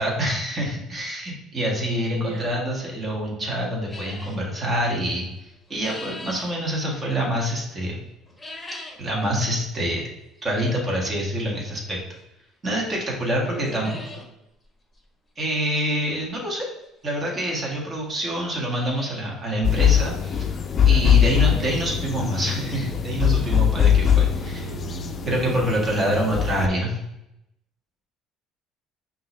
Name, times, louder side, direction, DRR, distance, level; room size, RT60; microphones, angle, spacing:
voice 1, 0.0-5.3 5.7-8.0 9.0-10.0 10.4-12.0 12.6-14.0 15.4-16.7 17.0-20.4 20.8-24.7 25.2-27.0, equal, 30° right, -2 dB, 1.6 m, -26 dB
voice 2, 2.1-2.6 10.6-11.1 13.1-14.2 21.6-22.1 24.6-25.4 26.4-26.7, right 5 dB, 60° right, -3 dB, 1.4 m, -41 dB
sound 1, 3.9-4.4 5.4-6.5 8.3-9.1 9.5-9.6 10.4-10.5 12.2-12.3 12.7-12.8 13.1-13.2 13.5-14.3 14.6-14.7 14.9-15.0 16.6-16.7 17.4-17.5 17.7-17.8 18.3-19.4 19.7-19.8 20.3-20.4 20.8-20.9 22.6-22.7 22.9-23.0 23.4-23.5, left 2 dB, 10° left, 1.3 m, -40 dB
sound 2, 19.6-26.7, left 8 dB, 35° left, 0.5 m, -21 dB
5.5 x 2.8 x 3.3 m, 0.83 s
cardioid pair, 110°, 0 cm